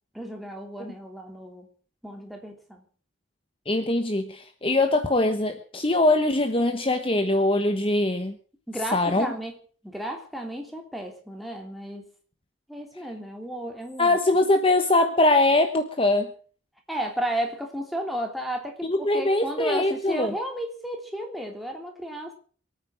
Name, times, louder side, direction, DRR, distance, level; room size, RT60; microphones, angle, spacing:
voice 1, 0.1-1.7 2.0-2.8 8.7-9.5 9.8-12.1 12.7-14.2 16.9-22.3, right 1 dB, ahead, 2 dB, 3.1 m, -33 dB
voice 2, 3.7-8.4 8.9-9.3 14.0-16.3 18.8-20.3, left 2 dB, 30° left, 7 dB, 1.1 m, -22 dB
23.5 x 9.2 x 6.3 m, 0.43 s
head